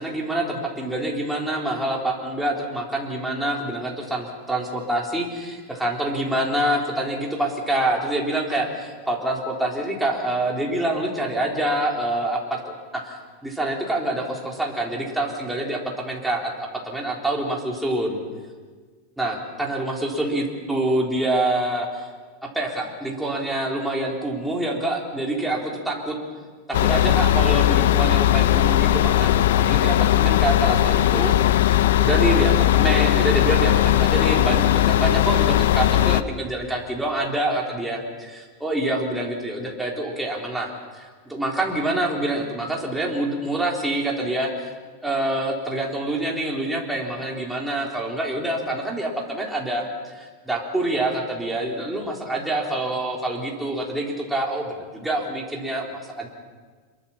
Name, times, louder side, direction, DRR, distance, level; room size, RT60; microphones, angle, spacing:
voice 1, 0.0-12.6 12.9-18.2 19.2-22.1 22.5-26.2 26.7-31.3 31.6-44.7 45.0-56.3, right 1 dB, 5° right, -2 dB, 3.9 m, -26 dB
sound 1, 26.7-36.2, left 13 dB, 80° left, 1.0 m, -18 dB
26.5 x 23.0 x 7.4 m, 1.5 s
supercardioid pair, 160°, 0 cm